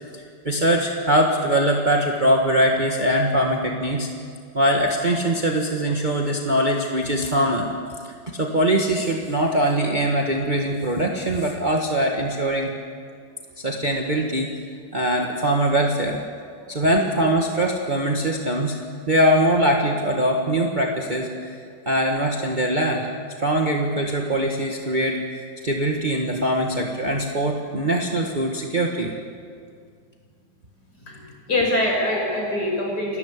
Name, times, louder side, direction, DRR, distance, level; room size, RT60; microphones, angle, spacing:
voice 1, 0.1-4.1 4.5-7.7 8.3-12.7 13.6-14.5 14.9-16.2 16.7-18.8 19.1-21.5 21.8-23.1 23.4-25.2 25.6-29.1, right 1 dB, 25° right, 0 dB, 1.7 m, -22 dB
voice 2, 31.0-33.2, left 1 dB, 65° left, -2 dB, 6.5 m, -24 dB
29.5 x 13.0 x 8.3 m, 2.1 s
omnidirectional pair, 1.9 m